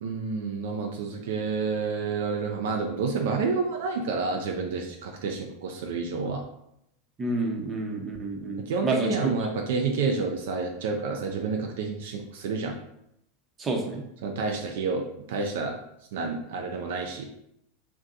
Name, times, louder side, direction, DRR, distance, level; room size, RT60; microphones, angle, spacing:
voice 1, 0.0-6.4 8.6-12.8 14.2-15.8 16.1-17.3, right 4 dB, 75° right, 2 dB, 0.4 m, -29 dB
voice 2, 7.2-9.3 13.6-14.0, right 3 dB, 25° right, 2 dB, 0.7 m, -29 dB
2.6 x 2.2 x 3.7 m, 0.79 s
hypercardioid pair, 105°, 0 cm